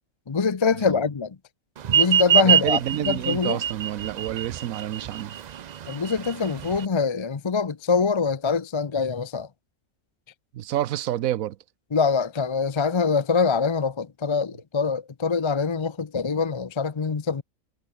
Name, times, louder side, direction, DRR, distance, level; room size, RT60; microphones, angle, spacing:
voice 1, 0.3-1.4 1.9-2.8 3.0-3.6 5.9-9.5 11.9-17.4, left 5 dB, 30° left, 0.5 m, -24 dB
sound 1, 1.8-6.9, right 9 dB, 70° right, 0.4 m, -23 dB
voice 2, 2.4-5.4 10.5-11.6, right 12 dB, 85° right, 1.1 m, -29 dB
omnidirectional pair, 1.4 m